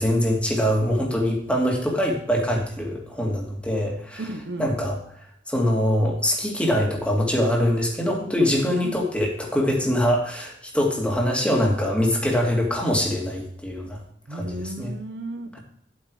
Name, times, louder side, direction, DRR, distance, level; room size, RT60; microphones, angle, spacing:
voice 1, 0.0-4.2 4.6-4.9 5.5-14.0 14.3-14.9, equal, 5° left, -1 dB, 2.4 m, -23 dB
voice 2, 4.2-4.7 8.8-9.0 14.3-15.6, right 2 dB, 65° right, 8 dB, 0.9 m, -34 dB
11.5 x 8.2 x 4.8 m, 0.69 s
head